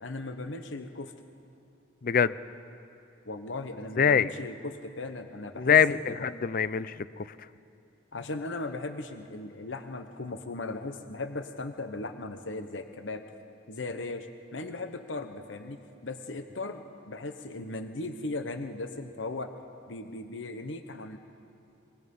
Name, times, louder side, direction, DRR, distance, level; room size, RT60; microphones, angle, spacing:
voice 1, 0.0-1.1 3.2-6.3 8.1-13.3 13.7-19.5 19.9-21.2, left 2 dB, 75° left, 8 dB, 1.0 m, -37 dB
voice 2, 2.0-2.3 4.0-4.3 5.6-7.3, left 7 dB, 45° left, 16 dB, 0.5 m, -24 dB
24.0 x 21.5 x 5.4 m, 2.9 s
head